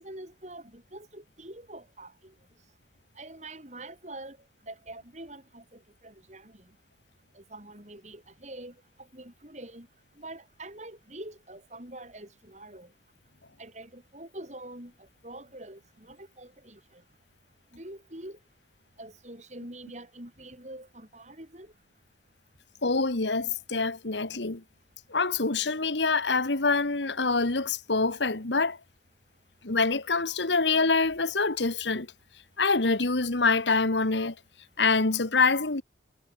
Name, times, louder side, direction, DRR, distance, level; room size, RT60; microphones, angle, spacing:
voice 1, 0.0-2.3 3.2-4.4 4.7-6.5 7.4-8.7 9.1-9.9 10.2-12.9 13.6-14.9 15.2-17.0 17.7-18.4 19.0-21.7, right 1 dB, 40° right, 7.5 m, -45 dB
voice 2, 22.8-24.6 25.1-28.8 29.6-32.1 32.6-34.3 34.8-35.8, left 4 dB, 85° left, 1.8 m, -25 dB
head